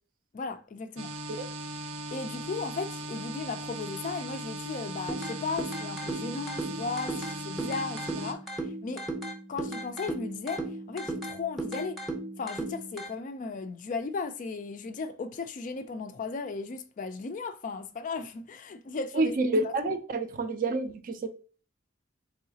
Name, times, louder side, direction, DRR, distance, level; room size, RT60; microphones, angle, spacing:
voice 1, 0.3-1.1 2.1-9.1 9.5-12.0 12.4-19.3 19.6-19.9, left 4 dB, 40° left, 0.3 m, -36 dB
sound 1, 1.0-8.3, right 1 dB, 85° right, 0.7 m, -38 dB
sound 2, 5.1-13.1, right 2 dB, ahead, 0.6 m, -36 dB
voice 2, 19.1-21.3, right 2 dB, 40° right, 0.4 m, -28 dB
3.8 x 3.1 x 2.7 m
head